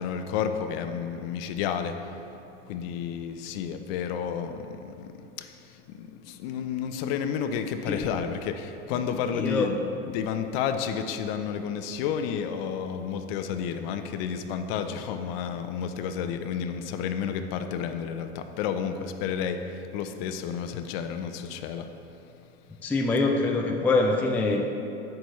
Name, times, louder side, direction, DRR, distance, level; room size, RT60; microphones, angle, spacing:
voice 1, 0.0-2.2 2.7-9.8 10.1-21.9, left 7 dB, 55° left, 8 dB, 0.6 m, -31 dB
voice 2, 9.3-9.7 22.8-24.6, left 3 dB, 5° left, 2 dB, 0.3 m, -24 dB
8.7 x 7.1 x 3.1 m, 2.8 s
hypercardioid pair, 95°, 36 cm